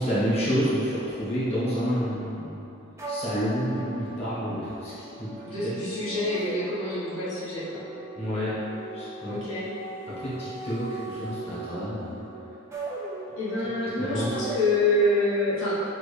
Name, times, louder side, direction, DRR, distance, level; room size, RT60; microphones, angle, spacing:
voice 1, 0.0-2.7 3.1-4.9 5.2-5.3 5.6-5.7 8.1-8.5 8.9-9.3 10.2-12.2 14.0-14.3, equal, 30° left, -11 dB, 1.2 m, -28 dB
sound 1, 3.0-15.3, right 2 dB, 15° right, 0.5 m, -39 dB
voice 2, 5.4-7.9 9.2-9.7 13.4-15.7, left 1 dB, 70° left, -11 dB, 1.3 m, -26 dB
6.1 x 2.5 x 3.3 m, 3.0 s
head